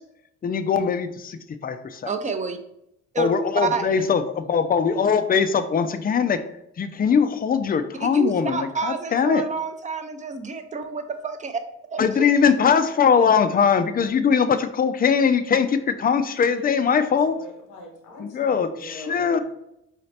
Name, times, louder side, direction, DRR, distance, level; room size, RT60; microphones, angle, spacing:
voice 1, 0.4-2.1 3.2-6.4 6.8-9.5 12.0-17.3 18.2-19.4, left 6 dB, 30° left, 10 dB, 0.4 m, -21 dB
voice 2, 2.1-2.6 3.1-3.3 3.6-4.0 8.0-11.6 11.9-12.1, right 5 dB, 25° right, 8 dB, 0.5 m, -29 dB
voice 3, 16.5-19.4, left 1 dB, 90° left, 0 dB, 1.2 m, -41 dB
4.8 x 2.8 x 3.2 m, 0.80 s
cardioid pair, 90°, 30 cm